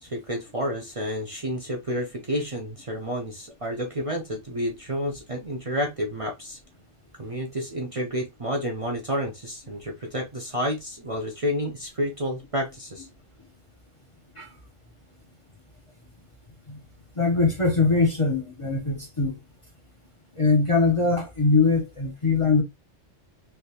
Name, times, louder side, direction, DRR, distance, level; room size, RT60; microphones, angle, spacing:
voice 1, 0.0-6.6 7.2-13.1, equal, 35° right, 0.6 m, -30 dB
voice 2, 17.2-19.4 20.4-22.6, left 4 dB, 30° left, 0.8 m, -22 dB
3.4 x 2.8 x 2.8 m
omnidirectional pair, 1.2 m